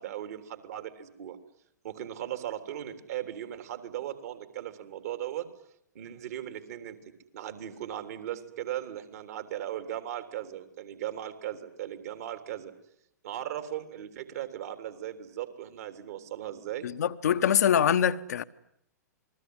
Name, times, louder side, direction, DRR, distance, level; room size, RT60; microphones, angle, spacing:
voice 1, 0.0-1.4 1.8-5.5 6.0-7.0 7.3-12.7 13.2-16.9, right 12 dB, 55° right, 3.4 m, -37 dB
voice 2, 16.8-18.4, left 9 dB, 65° left, 1.2 m, -24 dB
28.0 x 21.5 x 9.7 m
figure-of-eight pair, 105°, 10 cm